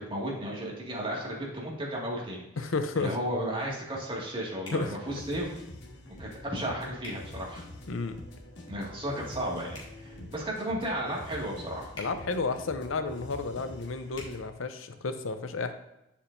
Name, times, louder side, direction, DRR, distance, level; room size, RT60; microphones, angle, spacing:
voice 1, 0.0-2.5 2.9-5.6 6.2-7.7 8.7-11.9, right 1 dB, 25° right, -4 dB, 2.0 m, -34 dB
voice 2, 2.6-3.2 4.7-5.0 7.9-8.2 10.2-10.3 12.0-15.7, left 3 dB, 85° left, 9 dB, 0.7 m, -32 dB
sound 1, 4.6-4.9 7.0-7.2 9.7-9.9 11.9-12.1 14.1-14.3, left 2 dB, 25° left, 2.1 m, -44 dB
sound 2, 4.8-14.4, left 1 dB, 60° left, 1.4 m, -46 dB
8.8 x 7.2 x 2.6 m, 0.89 s
head